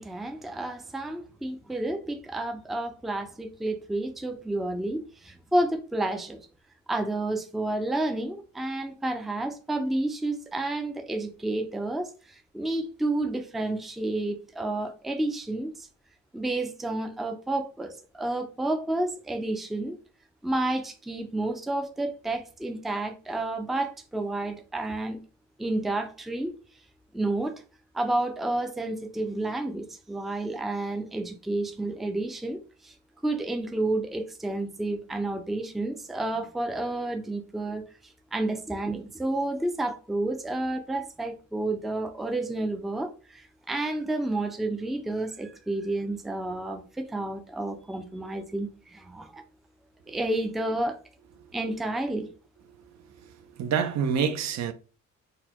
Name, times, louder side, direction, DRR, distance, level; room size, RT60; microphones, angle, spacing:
voice 1, 0.0-6.4 6.9-15.9 16.3-20.0 20.4-25.2 25.6-26.5 27.1-27.6 27.9-32.9 33.2-49.4 50.1-51.0 51.5-52.3, right 2 dB, ahead, 0.4 m, -30 dB
voice 2, 53.2-54.7, right 7 dB, 65° right, 0.6 m, -27 dB
4.0 x 2.2 x 2.9 m
cardioid pair, 90°, 30 cm